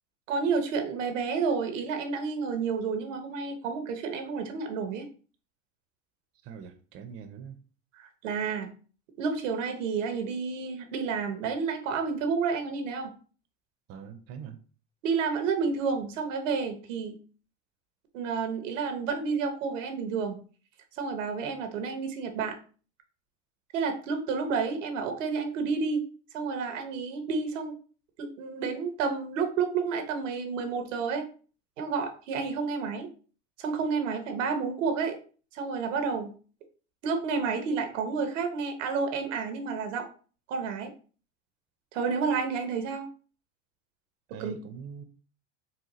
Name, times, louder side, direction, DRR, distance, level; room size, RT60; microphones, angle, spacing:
voice 1, 0.3-5.1 7.9-8.7 9.2-13.1 15.0-17.2 18.1-20.4 20.9-22.6 23.7-26.0 26.3-27.8 28.2-31.2 31.8-33.1 33.6-35.2 35.5-36.3 37.0-40.1 40.5-40.9 41.9-43.1 44.3-44.6, right 5 dB, 80° right, 6 dB, 0.9 m, -30 dB
voice 2, 6.4-7.6 13.9-14.6 44.3-45.0, right 7 dB, 40° right, 7 dB, 0.5 m, -43 dB
4.1 x 2.3 x 2.9 m, 0.39 s
hypercardioid pair, 95°, 37 cm